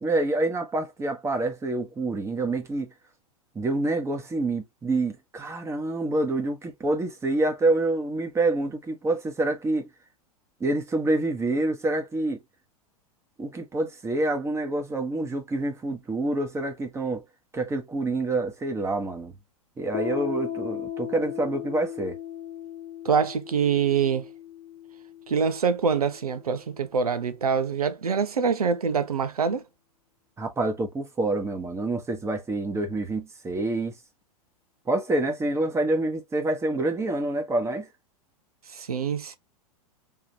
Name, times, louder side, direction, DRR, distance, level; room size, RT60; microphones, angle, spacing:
voice 1, 0.0-2.9 3.5-9.9 10.6-12.4 13.4-17.2 17.5-19.3 19.8-22.2 30.4-33.9 34.9-37.9, right 2 dB, 15° right, 1.1 m, -27 dB
Piano, 19.9-27.2, left 10 dB, 30° left, 0.8 m, -37 dB
voice 2, 23.0-24.2 25.3-29.6 38.7-39.4, right 6 dB, 80° right, 0.7 m, -25 dB
3.6 x 3.0 x 2.7 m
figure-of-eight pair, 95°, 19 cm